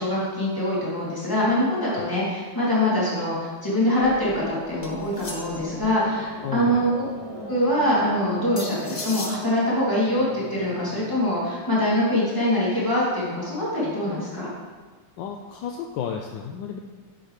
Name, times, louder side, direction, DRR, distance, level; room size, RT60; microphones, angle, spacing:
voice 1, 0.0-6.9 7.5-14.5, left 1 dB, 10° left, -8 dB, 2.7 m, -24 dB
sound 1, 4.0-11.4, right 1 dB, 30° right, 0.7 m, -39 dB
sound 2, 4.8-5.7 8.6-9.4, left 2 dB, 30° left, 0.6 m, -36 dB
voice 2, 6.4-6.9 15.2-16.8, left 8 dB, 75° left, 3 dB, 1.2 m, -32 dB
8.9 x 8.4 x 3.2 m, 1.4 s
omnidirectional pair, 2.2 m